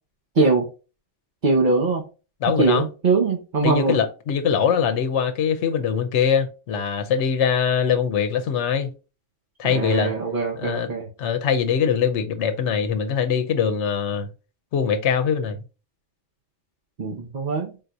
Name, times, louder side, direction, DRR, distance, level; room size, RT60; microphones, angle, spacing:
voice 1, 1.4-2.0 2.6-4.0 9.7-11.1 17.0-17.7, right 3 dB, 45° right, 0.9 m, -22 dB
voice 2, 2.4-2.9 3.6-8.9 9.6-10.1 10.6-10.9 11.2-14.3 14.7-15.6, left 7 dB, 80° left, 0.9 m, -22 dB
3.7 x 2.7 x 4.5 m
omnidirectional pair, 1.2 m